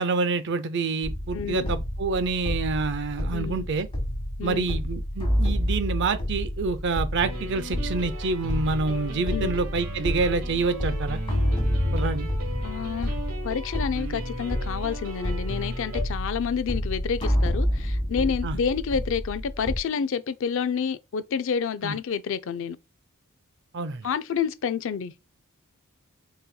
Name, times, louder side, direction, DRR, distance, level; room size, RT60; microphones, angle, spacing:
voice 1, 0.0-3.9 4.4-11.2 11.9-12.3 18.4-18.6 21.8-22.0 23.7-24.1, right 4 dB, 55° right, 0.5 m, -27 dB
sound 1, 1.0-19.8, equal, 25° left, 1.2 m, -29 dB
voice 2, 1.3-1.7 3.3-3.7 4.4-4.7 9.3-9.5 12.6-13.1 13.4-22.8 24.0-25.2, left 6 dB, 65° left, 0.4 m, -29 dB
sound 2, 7.2-16.0, equal, 85° right, 1.2 m, -38 dB
4.1 x 3.9 x 2.2 m
head